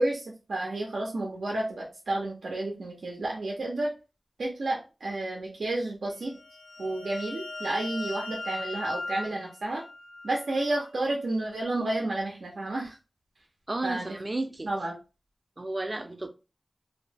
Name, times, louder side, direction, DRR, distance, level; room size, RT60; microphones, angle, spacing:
voice 1, 0.0-3.9 4.4-6.4 6.8-9.8 10.2-12.9 13.8-14.2 14.6-15.0, right 2 dB, 90° right, 0.6 m, -31 dB
sound 1, 6.2-10.7, left 2 dB, 90° left, 0.4 m, -39 dB
voice 2, 13.7-14.7 15.6-16.3, right 2 dB, 35° right, 0.5 m, -33 dB
2.7 x 2.0 x 3.3 m
cardioid pair, 50°, 0 cm